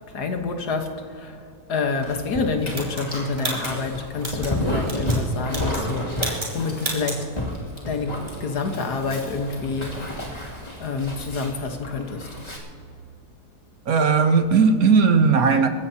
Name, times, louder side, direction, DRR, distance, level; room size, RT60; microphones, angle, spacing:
voice 1, 0.1-1.4 1.7-7.4 7.9-10.0 10.8-12.3, left 4 dB, 85° left, 1.9 m, -28 dB
Dog, 2.0-12.6, equal, 25° left, 2.7 m, -31 dB
sound 1, 2.7-4.5 4.8-5.2 5.5-5.9 6.2-6.5 6.8-7.2, right 1 dB, 30° right, 3.1 m, -31 dB
voice 2, 13.9-15.7, right 5 dB, 65° right, 1.4 m, -17 dB
27.5 x 15.5 x 2.9 m
omnidirectional pair, 1.7 m